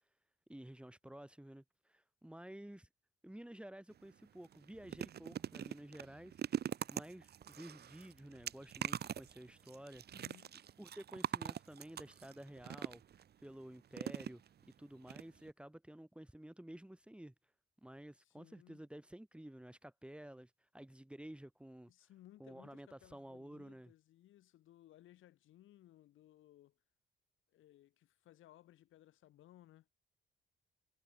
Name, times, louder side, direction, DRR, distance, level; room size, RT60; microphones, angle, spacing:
voice 1, 0.5-2.9 3.2-6.4 6.9-10.0 10.8-13.0 13.4-14.4 14.8-17.3 17.8-22.1 22.4-23.9, right 1 dB, 5° right, 4.3 m, -52 dB
sound 1, 3.9-4.1 4.4-13.2 13.9-14.7 15.1-15.2 15.5-15.6, right 9 dB, 55° right, 1.0 m, -43 dB
voice 2, 10.1-10.6 18.2-18.9 21.9-26.8 27.5-29.9, left 13 dB, 80° left, 4.1 m, -62 dB
cardioid pair, 90°, 20 cm